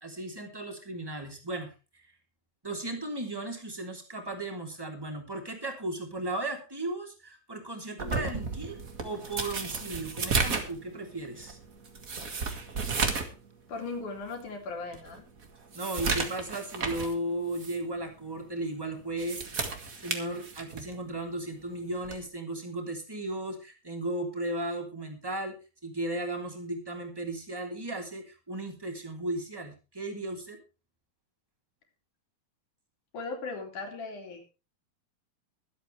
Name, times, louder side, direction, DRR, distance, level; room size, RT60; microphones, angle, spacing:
voice 1, 0.0-1.7 2.6-11.6 15.7-25.5 25.8-30.6, right 1 dB, 5° right, 2 dB, 2.5 m, -35 dB
sound 1, 8.0-13.4 13.7-13.8 14.4-14.5 14.9-17.2 17.5-17.8 19.0-20.9 22.0-22.3, right 4 dB, 45° right, 1.1 m, -33 dB
voice 2, 13.7-15.2 33.1-34.5, left 3 dB, 55° left, 3 dB, 4.1 m, -38 dB
23.5 x 8.2 x 3.3 m, 0.31 s
omnidirectional pair, 4.3 m